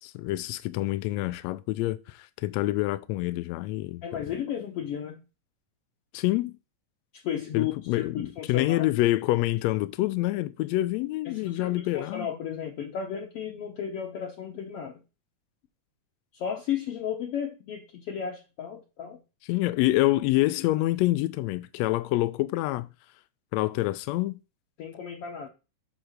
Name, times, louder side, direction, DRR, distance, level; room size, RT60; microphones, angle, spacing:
voice 1, 0.0-4.0 6.1-6.6 7.5-12.3 19.5-22.9 23.5-24.4, left 17 dB, 85° left, 1.5 m, -27 dB
voice 2, 4.0-5.2 7.1-8.9 11.2-15.0 16.3-19.2 24.8-25.5, left 8 dB, 70° left, 1.4 m, -34 dB
7.7 x 3.3 x 6.4 m
omnidirectional pair, 3.6 m